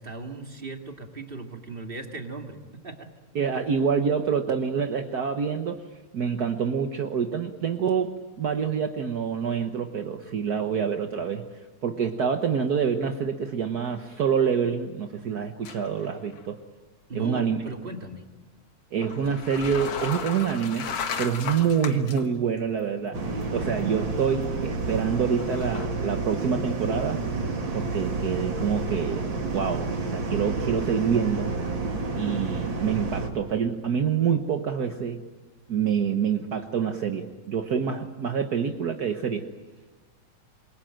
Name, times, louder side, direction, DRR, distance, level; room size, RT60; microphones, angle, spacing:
voice 1, 0.0-3.1 17.1-18.3, right 3 dB, 20° right, 4 dB, 1.9 m, -37 dB
voice 2, 3.3-5.8 6.1-11.4 11.8-16.6 17.1-17.6 18.9-20.9 21.2-23.2 23.5-27.2 27.7-31.5 32.1-35.2 35.7-39.5, right 7 dB, 65° right, 6 dB, 0.9 m, -26 dB
sound 1, 15.6-16.1 16.3-16.5 19.0-22.2 22.8-22.9 25.3-25.9, left 6 dB, 60° left, 2.4 m, -35 dB
sound 2, 23.1-33.3, right 3 dB, 40° right, 3.2 m, -30 dB
27.5 x 22.5 x 8.9 m, 1.2 s
omnidirectional pair, 3.3 m